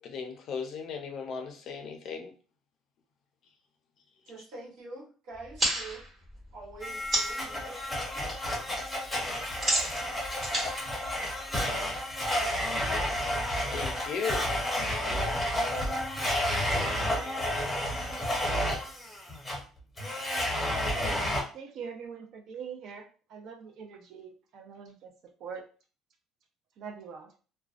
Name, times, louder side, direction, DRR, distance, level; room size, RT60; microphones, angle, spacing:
voice 1, 0.0-2.3 13.7-14.5, left 6 dB, 50° left, 0.5 m, -36 dB
voice 2, 4.2-6.1 6.5-8.4, right 2 dB, 90° right, 1.1 m, -45 dB
sound 1, 5.3-7.5 7.9-8.3 8.6-11.9, right 1 dB, 30° right, 1.2 m, -32 dB
Domestic sounds home sounds, 6.8-21.4, equal, 5° left, 0.7 m, -31 dB
voice 3, 21.5-25.1 25.4-25.6 26.8-27.3, right 6 dB, 55° right, 0.5 m, -43 dB
2.4 x 2.1 x 2.4 m
cardioid pair, 155°, 0 cm